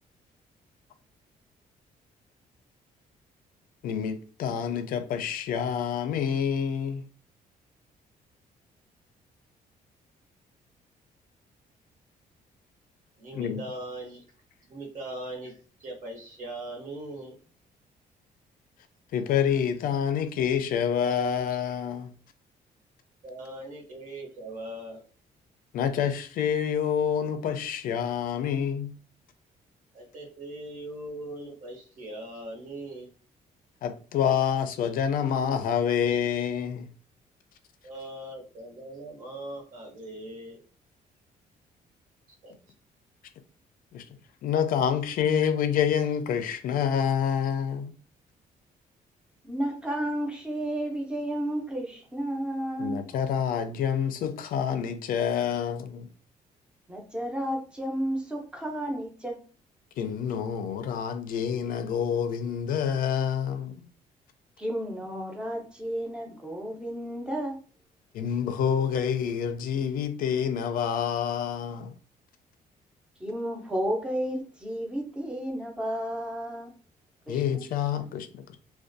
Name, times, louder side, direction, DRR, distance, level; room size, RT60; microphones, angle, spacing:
voice 1, 3.8-7.0 13.3-13.6 19.1-22.1 25.7-28.9 33.8-36.9 43.9-44.0 44.4-47.9 52.8-56.1 60.0-63.7 68.1-71.9 77.3-78.3, left 8 dB, 70° left, 0.4 m, -27 dB
voice 2, 13.2-14.2 14.7-17.4 23.2-25.0 29.9-33.1 37.8-40.6 42.4-42.5, right 1 dB, 60° right, 1.0 m, -40 dB
voice 3, 49.4-53.1 56.9-59.4 64.6-67.6 73.2-76.7 77.3-77.6, right 1 dB, 5° right, 0.5 m, -32 dB
2.4 x 2.2 x 2.5 m
cardioid pair, 150°, 15 cm